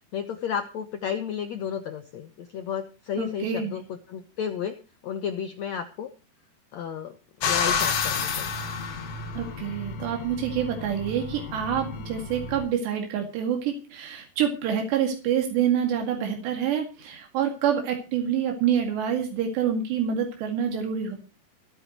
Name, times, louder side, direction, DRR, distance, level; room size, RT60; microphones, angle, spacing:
voice 1, 0.1-4.8 5.0-6.1 6.7-7.2 7.4-8.6, left 8 dB, 90° left, 8 dB, 1.5 m, -32 dB
voice 2, 3.2-3.7 9.4-21.2, right 8 dB, 85° right, 3 dB, 4.4 m, -27 dB
sound 1, 7.4-12.7, left 5 dB, 55° left, 2.0 m, -30 dB
27.5 x 9.2 x 3.0 m, 0.31 s
omnidirectional pair, 4.8 m